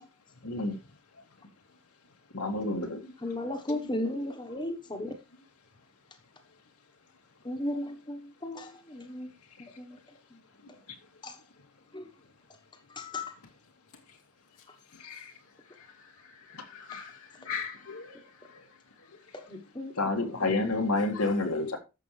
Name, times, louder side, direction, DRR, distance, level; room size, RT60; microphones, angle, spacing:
voice 1, 0.4-0.7 2.3-3.0 15.0-15.3 20.0-21.8, left 2 dB, 90° left, 2.1 m, -29 dB
voice 2, 3.2-5.1 7.4-9.3 9.8-10.0 11.2-11.3 11.9-12.0 13.0-13.3 19.3-19.9, left 1 dB, 20° left, 1.2 m, -35 dB
voice 3, 16.2-18.6 21.1-21.3, left 6 dB, 75° left, 1.2 m, -41 dB
11.5 x 7.2 x 3.3 m
head